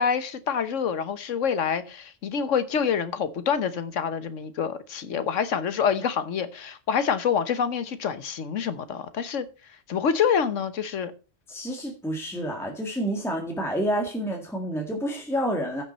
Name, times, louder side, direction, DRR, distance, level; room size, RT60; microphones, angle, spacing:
voice 1, 0.0-9.5 9.9-11.1, left 7 dB, 85° left, 1.3 m, -26 dB
voice 2, 11.5-15.8, equal, ahead, 1.7 m, -29 dB
15.0 x 5.9 x 4.2 m
omnidirectional pair, 1.3 m